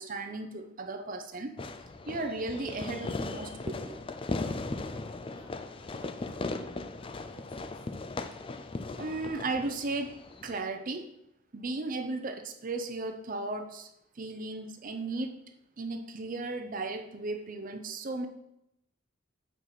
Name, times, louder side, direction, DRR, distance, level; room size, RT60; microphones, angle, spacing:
voice 1, 0.0-1.5 2.1-4.0 9.0-10.1 10.4-11.1 11.5-13.9 14.2-15.3 15.8-18.3, right 2 dB, 45° right, 7 dB, 0.7 m, -35 dB
Fireworks, 1.6-10.6, left 3 dB, 25° left, 0.4 m, -38 dB
voice 2, 5.3-6.5 7.0-7.9, right 1 dB, 50° left, -2 dB, 2.0 m, -57 dB
6.1 x 4.7 x 5.8 m, 0.81 s
head